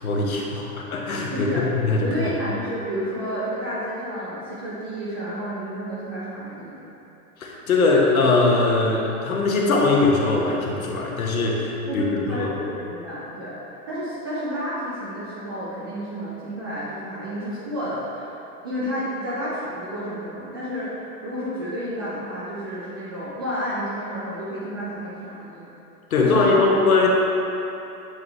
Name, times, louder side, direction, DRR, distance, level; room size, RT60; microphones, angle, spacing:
voice 1, 0.0-2.1 7.4-12.5 26.1-27.1, left 3 dB, 65° left, -2 dB, 1.1 m, -21 dB
voice 2, 1.3-1.7 2.0-6.8 11.9-18.3 18.6-25.7 26.2-26.6, equal, 20° right, -9 dB, 0.3 m, -31 dB
7.9 x 3.6 x 3.3 m, 3.0 s
figure-of-eight pair, 100°, 46 cm